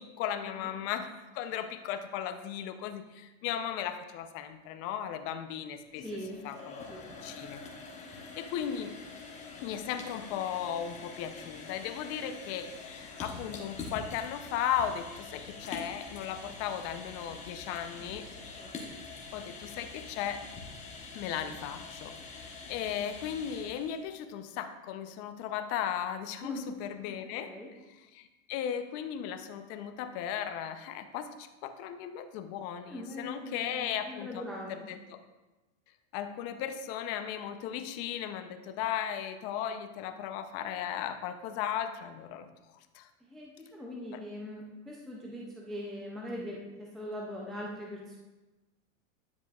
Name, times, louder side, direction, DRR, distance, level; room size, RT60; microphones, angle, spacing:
voice 1, 0.0-6.0 6.4-6.8 7.2-7.6 8.1-9.0 9.6-18.3 19.3-20.5 21.1-34.4 34.7-35.2 36.1-42.5 42.9-43.1 44.1-44.2, left 9 dB, 40° left, 8 dB, 0.6 m, -36 dB
sound 1, 5.8-24.1, left 4 dB, 15° left, 1.0 m, -45 dB
voice 2, 6.0-6.4 6.9-7.1 18.0-18.1 18.3-18.9 26.4-26.6 27.0-27.7 32.8-34.9 43.3-48.2, left 1 dB, ahead, -3 dB, 0.3 m, -42 dB
10.0 x 7.3 x 2.3 m, 1.1 s
supercardioid pair, 140°, 40 cm